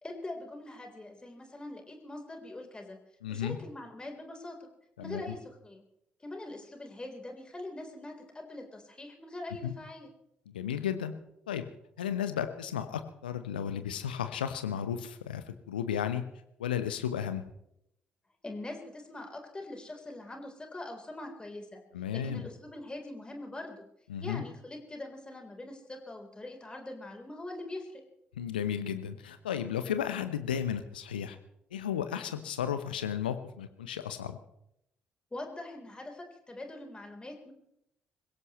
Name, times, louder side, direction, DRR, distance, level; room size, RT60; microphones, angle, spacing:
voice 1, 0.0-3.0 3.3-4.6 5.0-5.8 6.2-10.1 18.4-21.8 22.1-23.8 24.2-28.0 35.3-37.5, left 2 dB, 20° left, 3 dB, 3.7 m, -43 dB
voice 2, 3.2-3.6 5.0-5.4 9.6-9.7 10.5-11.1 11.5-11.7 12.0-16.2 16.6-17.4 21.9-22.4 24.1-24.4 28.4-31.4 31.7-34.4, left 9 dB, 75° left, 10 dB, 0.9 m, -34 dB
26.0 x 16.5 x 3.1 m, 0.78 s
figure-of-eight pair, 45°, 5 cm